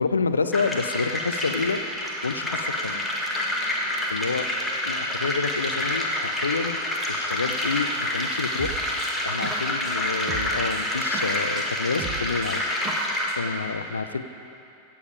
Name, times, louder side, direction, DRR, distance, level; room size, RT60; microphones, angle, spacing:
voice 1, 0.0-1.8 2.2-3.0 4.1-4.5 4.8-6.8 7.1-8.8 9.2-12.6 13.4-14.2, left 4 dB, 75° left, 11 dB, 0.5 m, -28 dB
sound 1, 0.5-13.3, left 1 dB, 10° left, 1.6 m, -28 dB
sound 2, 1.3-11.8, right 2 dB, 60° right, 2.1 m, -47 dB
sound 3, 8.6-9.9 10.3-11.7 12.0-13.4, right 7 dB, 30° right, 1.1 m, -38 dB
16.5 x 7.1 x 5.0 m, 2.7 s
figure-of-eight pair, 90°, 0 cm